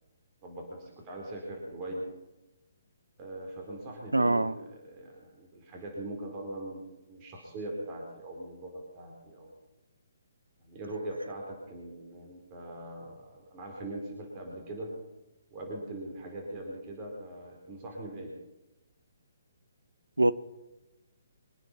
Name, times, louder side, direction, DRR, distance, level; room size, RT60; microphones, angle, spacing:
voice 1, 0.4-2.1 3.2-6.8 7.1-9.5 10.6-14.9 15.5-18.3, right 1 dB, 25° right, 0 dB, 4.4 m, -41 dB
voice 2, 4.1-4.6 20.2-20.3, right 2 dB, 80° right, 14 dB, 0.9 m, -23 dB
24.0 x 9.6 x 5.7 m, 0.99 s
figure-of-eight pair, 135°, 0 cm